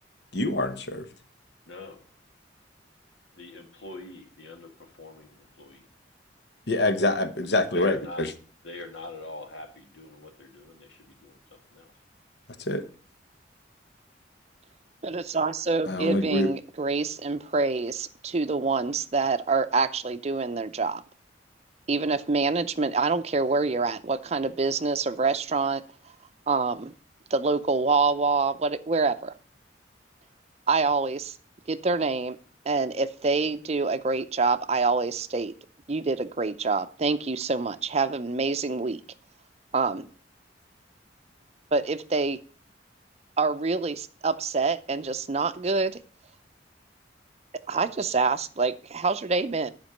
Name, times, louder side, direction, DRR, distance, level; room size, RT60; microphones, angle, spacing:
voice 1, 0.3-1.1 6.7-8.3 12.6-12.8 15.9-16.5, left 2 dB, 65° left, 10 dB, 1.0 m, -25 dB
voice 2, 1.7-2.0 3.4-5.9 7.7-8.3 8.6-11.9, left 2 dB, 85° left, 4 dB, 2.1 m, -43 dB
voice 3, 15.0-21.0 21.9-25.8 26.5-26.9 27.3-29.3 30.7-31.4 31.7-32.4 32.7-35.5 35.9-39.0 39.7-40.1 41.7-42.4 43.4-46.0 47.7-49.7, right 4 dB, 35° right, 12 dB, 0.5 m, -26 dB
10.5 x 5.2 x 6.5 m, 0.42 s
head